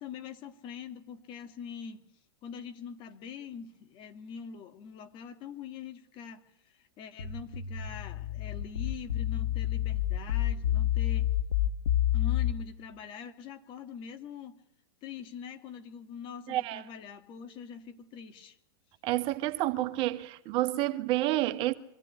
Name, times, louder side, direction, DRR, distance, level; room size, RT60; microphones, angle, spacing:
voice 1, 0.0-2.1 2.4-11.3 12.1-14.6 15.0-18.6, left 7 dB, 40° left, 2.0 m, -44 dB
sound 1, 7.2-12.5, left 12 dB, 80° left, 1.7 m, -28 dB
voice 2, 16.5-16.8 19.0-21.7, right 16 dB, 45° right, 1.6 m, -29 dB
24.5 x 14.0 x 9.9 m
hypercardioid pair, 110°, 13 cm